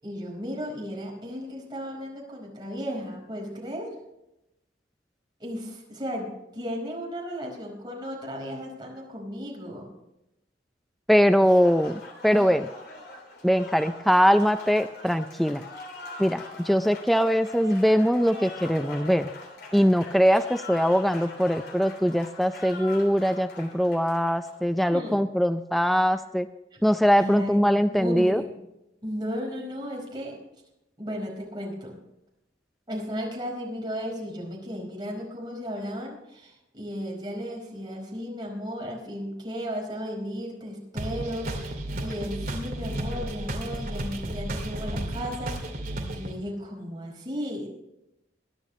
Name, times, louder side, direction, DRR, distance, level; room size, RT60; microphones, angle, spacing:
voice 1, 0.0-4.0 5.4-9.9 11.4-11.6 12.3-12.5 24.9-25.2 26.7-26.8 27.2-28.5 29.0-30.4 31.0-32.0 32.9-47.7, equal, 25° right, -2 dB, 4.7 m, -35 dB
voice 2, 11.1-12.7 13.4-15.6 16.2-19.3 19.7-26.5 26.8-28.4, equal, ahead, 9 dB, 0.4 m, -22 dB
Applause, 11.3-25.0, left 2 dB, 60° left, 3.1 m, -43 dB
sound 1, 41.0-46.3, right 1 dB, 50° right, 2.4 m, -33 dB
22.5 x 10.0 x 3.2 m, 0.89 s
head